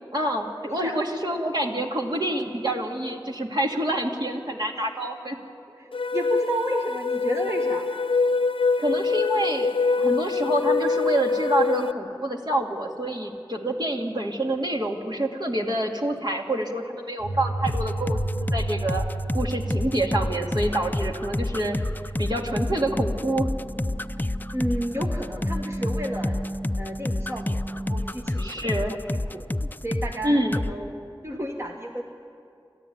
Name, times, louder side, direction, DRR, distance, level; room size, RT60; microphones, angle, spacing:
voice 1, 0.1-5.4 8.8-9.7 10.0-19.0 19.3-21.8 22.2-23.5 28.4-28.9 29.6-29.7 30.2-30.6, right 1 dB, 55° right, 0 dB, 2.3 m, -27 dB
voice 2, 5.8-7.9 24.5-26.4 26.8-29.5 29.8-30.9 31.2-32.0, right 1 dB, 35° right, 1 dB, 1.5 m, -32 dB
sound 1, 5.9-11.9, left 4 dB, 85° left, 0.5 m, -24 dB
sound 2, 17.2-28.1, right 2 dB, 70° right, 1.8 m, -34 dB
sound 3, 17.7-30.2 30.5-30.7, left 1 dB, 20° left, 0.5 m, -28 dB
28.5 x 13.5 x 9.3 m, 2.4 s
wide cardioid pair, 50°, 9 cm